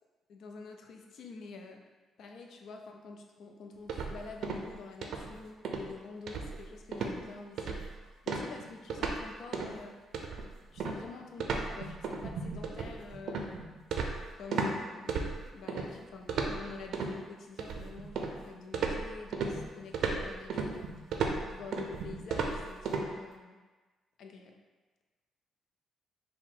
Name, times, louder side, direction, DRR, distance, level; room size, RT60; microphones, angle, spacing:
voice 1, 0.3-1.8 2.2-8.0 8.2-9.9 10.4-13.7 14.3-20.9 21.5-23.6 24.2-24.6, left 4 dB, 70° left, 3 dB, 0.5 m, -47 dB
sound 1, 3.9-4.7 5.0-5.3 5.6-5.9 6.3-6.7 6.9-7.2 7.6-7.9 8.3-9.2 9.5-9.8 10.1-14.7 15.1-15.9 16.3-17.1 17.6-18.4 18.7-23.0, right 4 dB, 70° right, 0.4 m, -34 dB
4.5 x 2.1 x 3.7 m, 1.3 s
cardioid pair, 90°, 0 cm